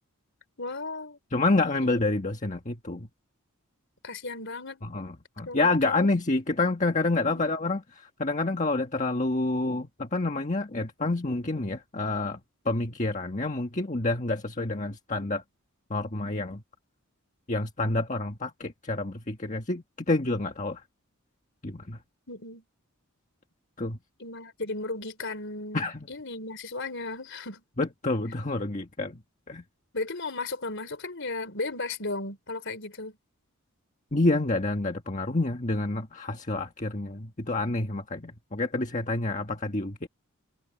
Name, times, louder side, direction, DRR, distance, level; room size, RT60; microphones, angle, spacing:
voice 1, 0.6-1.2 4.0-4.8 5.5-6.1 7.3-7.5 22.3-22.6 24.2-27.6 29.9-33.2, left 3 dB, 55° left, 4.1 m, -35 dB
voice 2, 1.3-3.1 4.9-12.4 12.6-15.4 15.9-16.6 17.5-20.8 21.6-22.0 23.8-24.0 25.7-26.1 27.8-29.2 29.5-29.6 34.1-40.1, left 2 dB, 35° left, 1.5 m, -28 dB
head